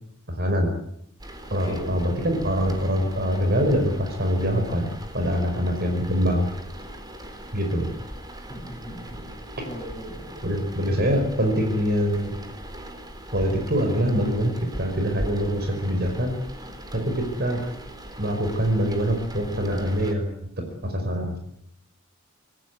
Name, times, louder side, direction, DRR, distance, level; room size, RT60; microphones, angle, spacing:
voice 1, 0.3-0.7 1.5-6.5 7.5-7.9 10.4-12.4 13.3-16.4 16.9-17.6 18.2-20.3 20.8-21.4, equal, 50° right, 4 dB, 5.3 m, -24 dB
sound 1, 1.2-20.1, right 1 dB, 20° right, 4.2 m, -39 dB
voice 2, 8.5-9.3 9.7-10.5, equal, 15° left, 2 dB, 6.4 m, -39 dB
29.0 x 16.0 x 9.3 m, 0.73 s
head